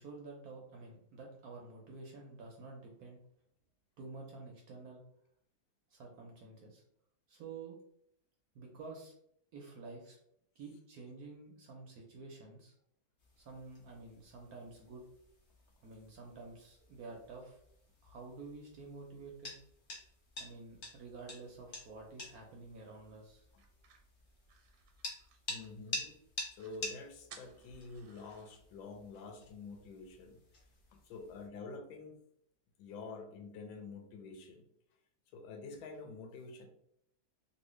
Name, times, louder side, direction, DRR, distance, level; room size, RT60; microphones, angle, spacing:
voice 1, 0.0-3.2 4.0-5.0 5.9-6.8 7.3-7.7 8.5-9.1 9.5-10.2 10.6-12.7 13.4-15.0 15.8-17.6 18.0-19.6 20.4-23.5, right 3 dB, 70° right, 0 dB, 0.9 m, -50 dB
sound 1, 13.2-31.5, left 2 dB, 70° left, 0.5 m, -49 dB
sound 2, 23.6-26.0 26.3-26.4 26.6-26.8 27.3-28.6, right 7 dB, 90° right, 1.4 m, -59 dB
voice 2, 25.5-26.2 26.5-30.4 30.9-32.2 32.8-34.7 35.3-36.7, left 4 dB, 90° left, 3 dB, 1.3 m, -48 dB
3.0 x 2.7 x 3.1 m, 0.72 s
omnidirectional pair, 2.1 m